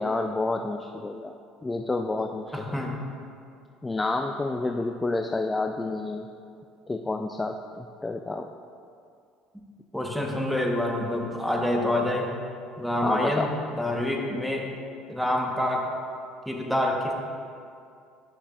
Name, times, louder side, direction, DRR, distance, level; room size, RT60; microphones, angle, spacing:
voice 1, 0.0-1.3 1.6-2.8 3.8-6.3 6.9-8.5 13.0-13.5, left 2 dB, 20° left, 4 dB, 0.4 m, -29 dB
voice 2, 2.5-3.0 9.9-12.3 12.8-13.5 13.8-14.7 15.1-15.9 16.5-17.1, left 1 dB, ahead, 0 dB, 1.1 m, -27 dB
10.0 x 6.3 x 2.4 m, 2.4 s
hypercardioid pair, 70°, 0 cm